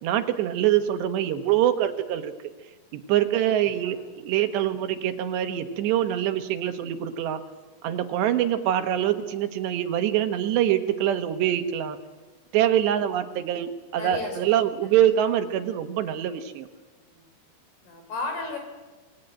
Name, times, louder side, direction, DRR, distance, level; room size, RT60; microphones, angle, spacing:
voice 1, 0.0-2.3 2.9-7.4 7.8-12.0 12.5-16.7, right 11 dB, 80° right, 8 dB, 3.6 m, -24 dB
voice 2, 3.7-4.2 14.0-14.4 17.1-17.2 17.8-18.6, left 3 dB, 70° left, 4 dB, 6.9 m, -34 dB
27.0 x 20.5 x 8.9 m, 1.2 s
omnidirectional pair, 4.9 m